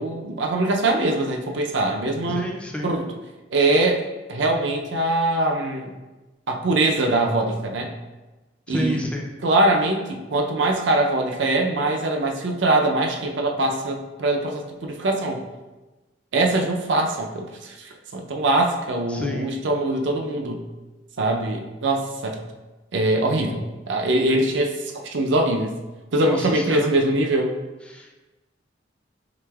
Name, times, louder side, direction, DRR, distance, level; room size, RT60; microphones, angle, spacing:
voice 1, 0.0-2.5 2.8-3.1 3.5-4.0 4.3-5.9 6.5-7.9 8.7-9.0 9.4-15.4 16.3-20.6 21.2-22.4 22.9-25.7 26.1-27.6, right 2 dB, 70° right, 3 dB, 0.5 m, -22 dB
voice 2, 2.3-2.9 8.7-9.3 19.1-19.5 26.2-26.9 27.9-28.1, left 1 dB, 5° left, 0 dB, 0.4 m, -29 dB
4.9 x 3.4 x 2.3 m, 1.1 s
head